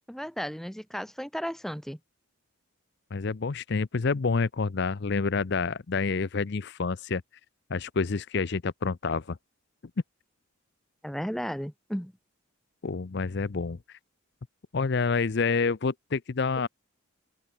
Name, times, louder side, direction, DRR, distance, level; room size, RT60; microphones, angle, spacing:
voice 1, 0.1-2.0 11.0-12.1, equal, ahead, 1.2 m, -34 dB
voice 2, 3.1-7.2 7.7-9.4 12.8-14.0 14.7-16.7, left 4 dB, 50° left, 0.6 m, -28 dB
open air
head